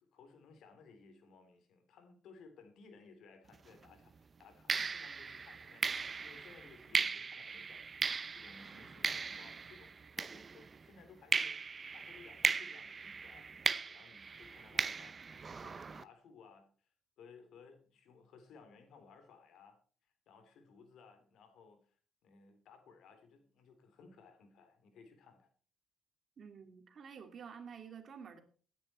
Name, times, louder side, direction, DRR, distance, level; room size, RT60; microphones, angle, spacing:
voice 1, 0.0-5.8 6.2-11.5 11.9-16.9 17.2-19.8 20.0-22.0 22.2-25.5, left 5 dB, 75° left, 3.4 m, -60 dB
sound 1, 3.5-3.8 4.7-10.9 11.3-16.0, right 5 dB, 35° right, 0.8 m, -37 dB
voice 2, 26.4-28.4, right 6 dB, 55° right, 2.5 m, -50 dB
17.0 x 10.0 x 4.4 m
cardioid pair, 90°, 0 cm